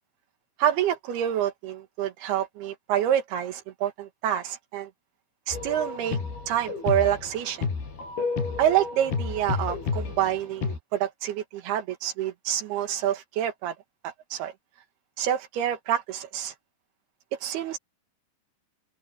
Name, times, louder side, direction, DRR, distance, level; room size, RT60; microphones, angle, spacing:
voice 1, 0.6-4.9 5.5-6.2 6.5-7.7 8.6-13.7 14.0-14.5 15.2-16.5 17.4-17.8, right 11 dB, 85° right, 3.5 m, -27 dB
sound 1, 5.5-10.8, left 5 dB, 80° left, 7.7 m, -31 dB
omnidirectional pair, 4.5 m